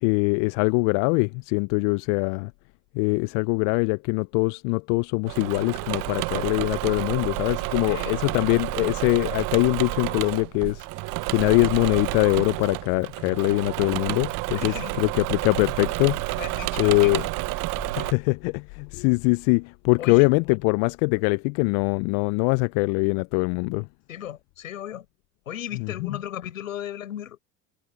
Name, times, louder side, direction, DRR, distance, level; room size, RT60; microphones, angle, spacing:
voice 1, 0.0-2.5 2.9-10.9 11.3-16.4 16.8-17.3 17.9-23.9 25.8-26.1, left 33 dB, 60° left, 0.9 m, -23 dB
Engine / Mechanisms, 5.2-18.1, right 23 dB, 55° right, 0.9 m, -30 dB
voice 2, 7.9-8.2 14.5-14.9 16.4-17.3 20.0-20.3 24.1-25.1 25.5-27.4, left 11 dB, 80° left, 6.0 m, -36 dB
hypercardioid pair, 65°, 40 cm